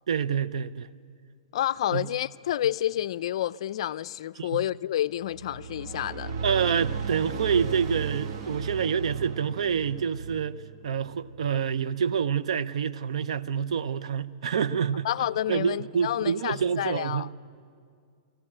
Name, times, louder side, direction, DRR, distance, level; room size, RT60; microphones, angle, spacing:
voice 1, 0.1-0.9 1.9-2.0 4.4-4.6 6.4-15.1 15.5-17.3, right 7 dB, 75° right, 0.6 m, -27 dB
voice 2, 1.5-6.3 15.0-17.3, left 12 dB, 60° left, 0.4 m, -29 dB
sound 1, 5.2-11.8, right 5 dB, 50° right, 1.3 m, -35 dB
20.5 x 14.5 x 8.7 m
hypercardioid pair, 145°, 3 cm